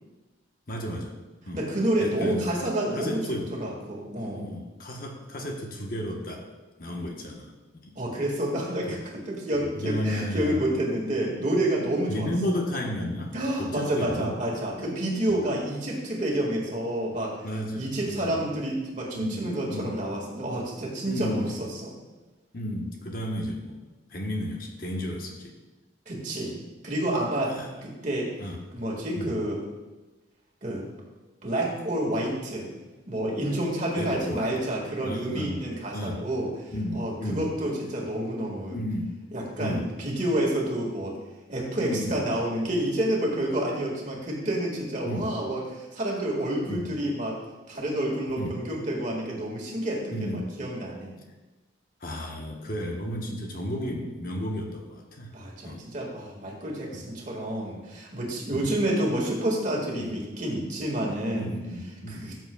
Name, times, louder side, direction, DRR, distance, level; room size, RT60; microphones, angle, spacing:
voice 1, 0.7-1.2 1.4-1.6 2.0-2.4 2.9-3.5 4.3-6.4 6.8-7.9 9.8-10.6 12.1-14.3 14.8-14.9 15.3-15.4 17.4-18.3 19.1-19.4 19.7-19.9 21.1-21.5 22.5-23.8 24.1-25.6 27.5-27.7 28.4-28.6 29.2-29.3 33.9-34.5 35.0-36.2 36.7-37.5 38.7-39.1 39.6-39.9 41.8-42.1 45.0-45.3 46.7-46.9 48.4-48.6 50.1-50.5 52.0-55.3 55.6-55.9 56.9-57.0 58.5-58.7 59.9-60.1 61.3-62.3, equal, 45° left, 1 dB, 1.1 m, -33 dB
voice 2, 1.5-3.3 3.6-4.5 8.0-12.3 13.3-17.3 17.7-21.4 21.8-21.9 26.1-26.5 26.8-27.6 27.8-28.3 28.7-29.6 30.6-30.8 31.4-32.7 33.1-38.8 39.3-41.2 41.5-47.4 47.7-51.2 55.3-61.5 62.1-62.4, right 1 dB, 40° right, -2 dB, 1.9 m, -29 dB
13.5 x 7.5 x 2.3 m, 1.1 s
head